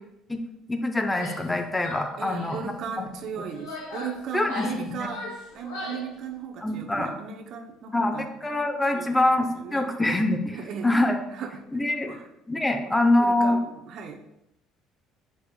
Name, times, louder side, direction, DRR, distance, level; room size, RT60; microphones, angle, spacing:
voice 1, 0.7-2.7 3.0-3.2 4.3-5.1 6.6-7.1 7.9-11.2 11.7-12.2 12.5-13.6, left 1 dB, 15° left, 5 dB, 0.8 m, -25 dB
Female speech woman speaking / Yell, 1.1-1.5 1.8-2.7 3.3-6.1, left 2 dB, 80° left, 2.2 m, -38 dB
voice 2, 2.2-5.2 5.5-8.3 8.9-9.2 9.5-9.9 10.5-10.9 11.3-11.6 12.1-12.3 12.8-14.2, right 6 dB, 60° right, 6 dB, 0.8 m, -37 dB
7.9 x 5.4 x 2.3 m, 0.88 s
hypercardioid pair, 60°, 0 cm